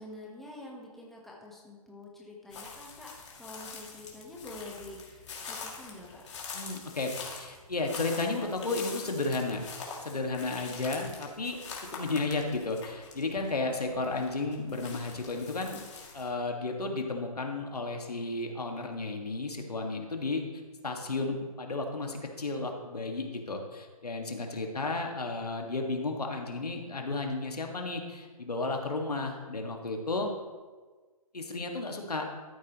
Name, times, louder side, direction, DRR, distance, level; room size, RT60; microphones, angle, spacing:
voice 1, 0.0-3.1 3.3-6.3, left 1 dB, ahead, -3 dB, 1.1 m, -47 dB
sound 1, 2.5-16.3, left 5 dB, 50° left, 2.6 m, -44 dB
voice 2, 6.5-9.6 10.0-11.6 11.9-15.8 16.1-20.4 20.8-30.3 31.3-32.3, left 3 dB, 90° left, 2 dB, 1.9 m, -33 dB
13.5 x 8.1 x 3.1 m, 1.4 s
hypercardioid pair, 150°, 19 cm